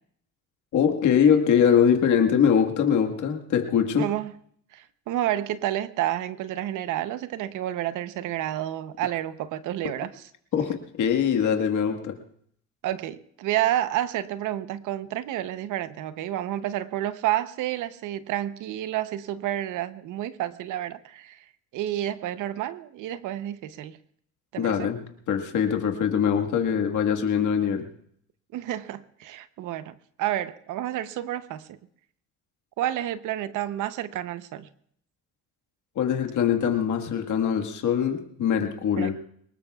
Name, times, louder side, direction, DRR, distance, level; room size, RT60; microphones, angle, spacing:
voice 1, 0.7-4.1 10.5-12.2 24.6-27.9 36.0-39.1, left 8 dB, 75° left, 4 dB, 1.7 m, -23 dB
voice 2, 4.0-4.3 4.7-10.1 12.8-21.4 21.7-24.0 24.5-24.9 28.5-31.8 32.8-34.7 39.0-39.1, right 13 dB, 90° right, 13 dB, 0.8 m, -30 dB
23.5 x 20.0 x 2.4 m, 0.65 s
cardioid pair, 90°, 30 cm